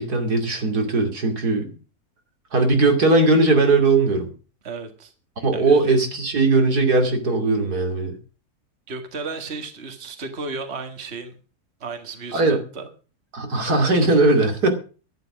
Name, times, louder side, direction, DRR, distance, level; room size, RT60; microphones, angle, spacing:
voice 1, 0.0-1.7 2.5-4.3 5.4-8.1 12.3-12.6 13.3-14.7, right 3 dB, 85° right, 4 dB, 3.2 m, -19 dB
voice 2, 4.6-5.1 5.5-5.9 8.9-11.3 11.8-12.9, right 4 dB, 45° right, 6 dB, 2.0 m, -34 dB
11.5 x 11.5 x 6.2 m, 0.37 s
omnidirectional pair, 1.6 m